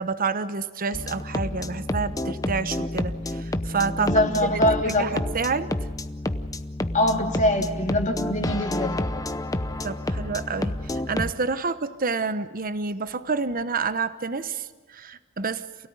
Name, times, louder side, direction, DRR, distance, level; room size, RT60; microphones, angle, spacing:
voice 1, 0.0-4.1 4.4-4.6 4.8-5.7 9.8-15.9, right 4 dB, 40° right, 13 dB, 1.0 m, -29 dB
sound 1, 0.9-11.3, left 1 dB, 15° left, 0.7 m, -29 dB
voice 2, 4.0-5.2 6.9-8.9, left 1 dB, 35° left, 2 dB, 2.5 m, -23 dB
28.0 x 17.5 x 9.4 m, 1.4 s
head